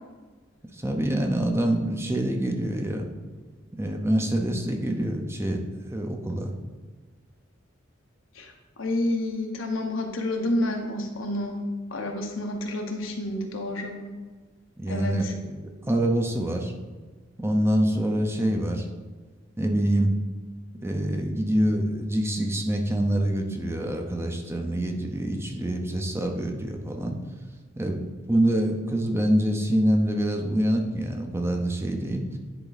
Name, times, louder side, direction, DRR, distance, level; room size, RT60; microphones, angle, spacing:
voice 1, 0.8-3.1 3.8-5.6 5.9-6.5 14.8-15.6 15.9-16.7 17.4-18.8 19.6-20.1 20.8-27.2 27.8-32.3, right 1 dB, 15° right, 3 dB, 0.7 m, -25 dB
voice 2, 8.8-11.6 11.9-14.0 14.9-15.2, left 1 dB, 85° left, 3 dB, 1.0 m, -29 dB
10.0 x 3.7 x 4.1 m, 1.4 s
head